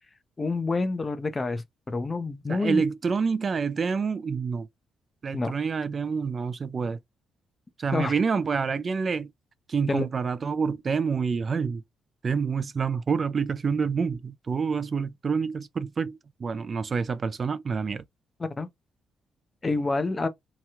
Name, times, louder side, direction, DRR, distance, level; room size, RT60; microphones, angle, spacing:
voice 1, 0.4-2.8 5.3-5.5 7.9-8.1 9.9-10.1 18.4-18.7 19.6-20.3, left 3 dB, 25° left, 0.5 m, -28 dB
voice 2, 2.5-4.7 5.2-7.0 7.8-9.3 9.7-11.8 12.2-18.0, right 5 dB, 40° right, 0.3 m, -27 dB
2.9 x 2.3 x 2.7 m
cardioid pair, 90°, 0 cm